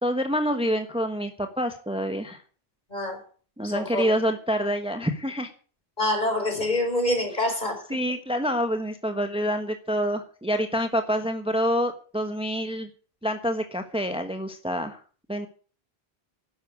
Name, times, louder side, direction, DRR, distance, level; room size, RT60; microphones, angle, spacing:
voice 1, 0.0-2.4 3.6-5.5 7.9-12.9 13.2-15.0 15.3-15.5, equal, 5° right, 1.3 m, -27 dB
voice 2, 2.9-3.2 3.6-4.0 6.0-7.9, left 1 dB, 45° left, 4.9 m, -26 dB
12.5 x 10.0 x 8.4 m
omnidirectional pair, 1.1 m